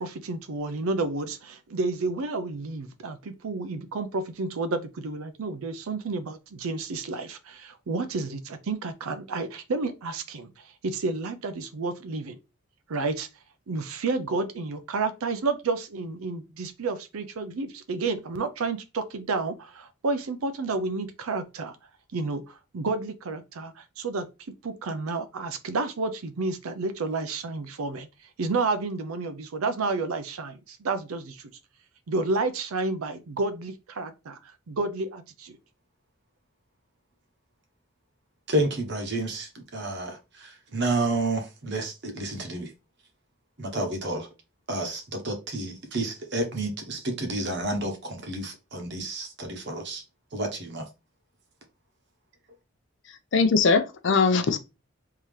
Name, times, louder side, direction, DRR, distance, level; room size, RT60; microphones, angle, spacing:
voice 1, 0.0-12.4 12.9-13.3 13.7-21.8 22.1-24.3 24.6-28.1 28.4-31.5 32.1-35.6, right 3 dB, 80° right, 0.5 m, -30 dB
voice 2, 38.5-42.7 43.6-44.3 44.7-50.0 50.3-50.8, right 2 dB, 50° right, 0.9 m, -30 dB
voice 3, 53.3-54.6, left 4 dB, 55° left, 0.5 m, -21 dB
3.6 x 2.8 x 3.2 m
head